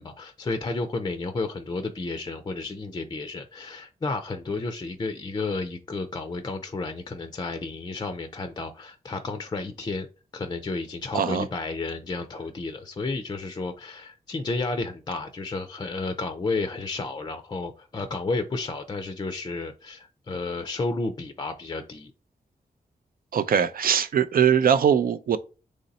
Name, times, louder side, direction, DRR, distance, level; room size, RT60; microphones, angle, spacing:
voice 1, 0.0-10.1 10.3-22.1, left 3 dB, 25° left, 0.4 m, -32 dB
voice 2, 11.1-11.5 23.3-25.4, right 8 dB, 65° right, 0.5 m, -21 dB
4.0 x 3.1 x 4.0 m
wide cardioid pair, 130°, 16 cm